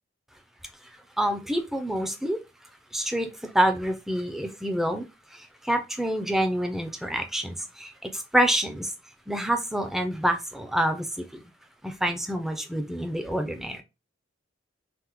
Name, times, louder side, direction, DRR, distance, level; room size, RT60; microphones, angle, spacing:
voice 1, 1.2-2.4 2.9-8.9 9.3-11.2 11.8-13.8, equal, ahead, 5 dB, 0.3 m, -27 dB
3.3 x 2.0 x 3.0 m, 0.26 s
head